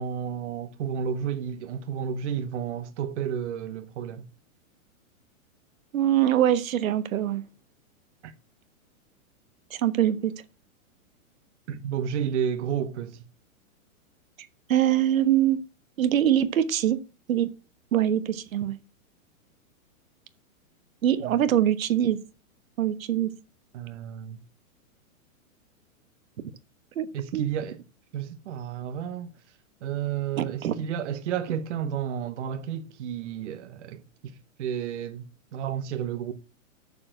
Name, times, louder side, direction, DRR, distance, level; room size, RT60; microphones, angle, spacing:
voice 1, 0.0-4.2 8.2-8.3 11.7-13.2 21.2-21.4 23.7-24.4 27.1-27.8 28.1-29.3 29.8-36.3, right 8 dB, 55° right, 1.1 m, -31 dB
voice 2, 5.9-7.4 9.7-10.3 14.7-15.6 16.0-17.0 17.3-17.5 17.9-18.8 21.0-22.2 22.8-23.3 27.0-27.1 27.3-27.5 30.4-30.7, right 11 dB, 70° right, 1.3 m, -23 dB
6.9 x 6.7 x 7.7 m
hypercardioid pair, 160°, 42 cm